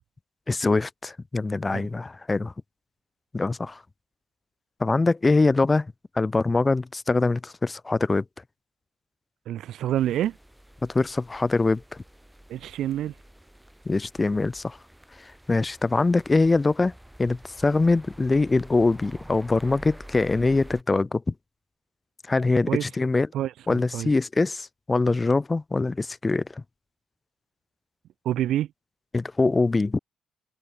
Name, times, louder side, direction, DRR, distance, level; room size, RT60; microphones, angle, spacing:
voice 1, 0.5-2.5 3.3-3.8 4.8-8.2 10.8-11.8 13.9-14.8 15.2-16.9 17.2-21.3 22.3-23.3 23.7-26.4 29.1-30.0, left 3 dB, 20° left, 0.6 m, -23 dB
voice 2, 9.5-10.4 12.5-13.1 22.7-22.8 23.3-24.1 28.2-28.7, right 12 dB, 75° right, 0.6 m, -27 dB
sound 1, 9.9-20.8, right 1 dB, 5° right, 2.3 m, -48 dB
cardioid pair, 90°, 0 cm